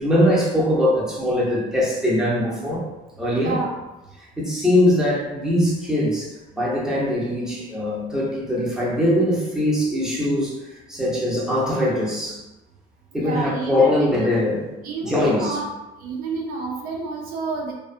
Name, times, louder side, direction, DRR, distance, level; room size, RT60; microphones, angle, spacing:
voice 1, 0.0-2.9 3.2-3.6 4.2-12.4 13.1-14.7 15.0-15.6, left 1 dB, 5° right, -6 dB, 0.7 m, -22 dB
voice 2, 3.3-3.7 13.1-14.1 14.8-15.7 16.0-17.7, right 3 dB, 60° right, 0 dB, 0.5 m, -29 dB
2.4 x 2.3 x 2.4 m, 1.0 s
cardioid pair, 110°, 17 cm